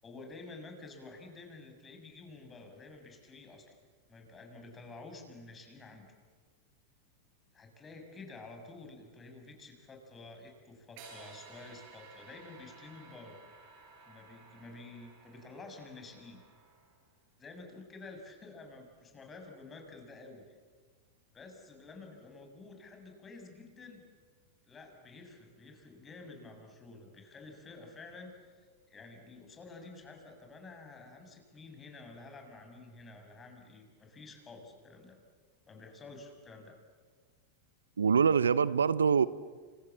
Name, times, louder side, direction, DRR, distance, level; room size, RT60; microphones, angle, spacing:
voice 1, 0.0-3.7 4.1-6.1 7.5-13.4 14.1-16.4 17.4-20.4 21.3-24.0 24.7-28.7 28.9-35.2 35.7-36.7, left 3 dB, 20° left, 4 dB, 7.2 m, -50 dB
sound 1, 11.0-17.1, right 4 dB, 55° right, 7.8 m, -55 dB
voice 2, 38.0-39.3, right 6 dB, 85° right, 18 dB, 0.7 m, -24 dB
30.0 x 26.5 x 7.5 m, 1.5 s
hypercardioid pair, 100°, 0 cm